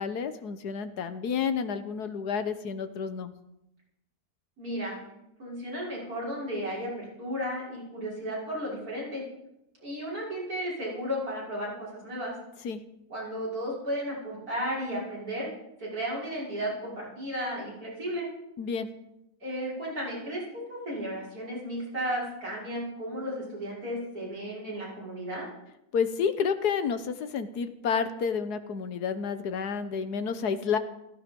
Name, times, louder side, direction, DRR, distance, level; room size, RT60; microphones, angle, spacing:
voice 1, 0.0-3.3 12.6-12.8 18.6-18.9 25.9-30.8, left 6 dB, 90° left, 10 dB, 1.6 m, -30 dB
voice 2, 4.6-5.0 5.4-9.2 9.8-12.3 13.1-15.5 15.8-18.3 19.4-20.4 20.7-25.5, equal, 70° right, -6 dB, 6.4 m, -34 dB
16.0 x 15.0 x 5.4 m, 0.87 s
omnidirectional pair, 1.6 m